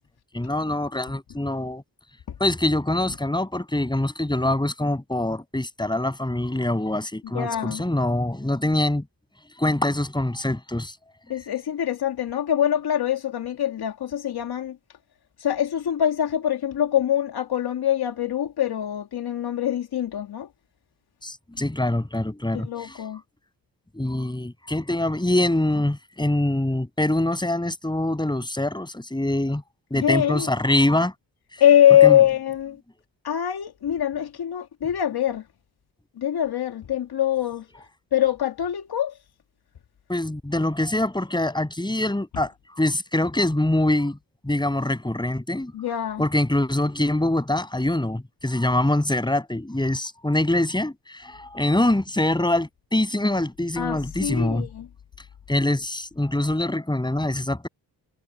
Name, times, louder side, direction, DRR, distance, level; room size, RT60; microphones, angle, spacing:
voice 1, 0.3-1.8 2.4-9.0 9.6-11.0 21.2-22.7 23.9-29.6 29.9-31.1 32.0-32.2 40.1-44.2 44.4-45.7 46.2-54.7 55.5-57.7, left 1 dB, 10° left, 7.7 m, -24 dB
voice 2, 7.3-7.8 11.3-14.8 15.4-20.5 22.5-23.2 29.9-30.5 31.6-32.8 33.2-35.4 36.2-37.7 38.1-39.2 45.7-46.2 53.8-54.9, left 10 dB, 65° left, 2.4 m, -23 dB
cardioid pair, 65°, 41 cm